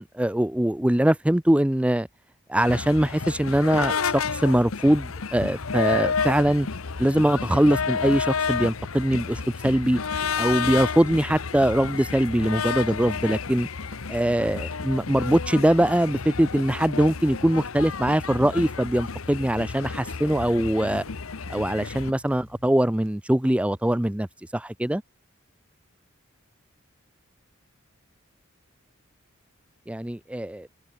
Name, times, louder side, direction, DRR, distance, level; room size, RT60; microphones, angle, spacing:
voice 1, 0.0-2.1 2.5-6.7 7.0-10.0 10.4-13.7 14.1-21.0 21.5-24.3 24.5-25.0 29.9-30.7, right 1 dB, 5° right, 0.5 m, -22 dB
sound 1, 2.6-22.1, left 5 dB, 80° left, 1.0 m, -31 dB
sound 2, 4.6-22.8, left 1 dB, 45° left, 1.9 m, -53 dB
sound 3, 9.2-24.1, right 2 dB, 65° right, 6.4 m, -54 dB
head